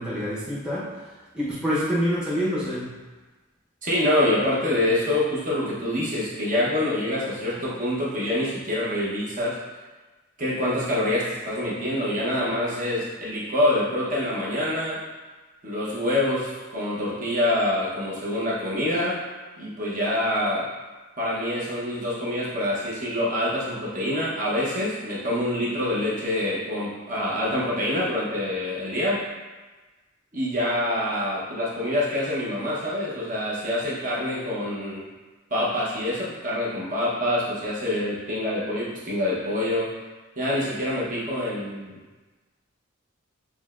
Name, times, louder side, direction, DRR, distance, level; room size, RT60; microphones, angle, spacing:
voice 1, 0.0-2.9, equal, 5° right, -10 dB, 0.8 m, -27 dB
voice 2, 3.8-9.6 10.4-15.0 15.6-19.2 19.6-20.7 21.2-29.2 30.3-35.0 35.5-39.9 40.4-42.0, left 1 dB, 40° right, -7 dB, 0.9 m, -26 dB
6.2 x 2.2 x 2.4 m, 1.2 s
head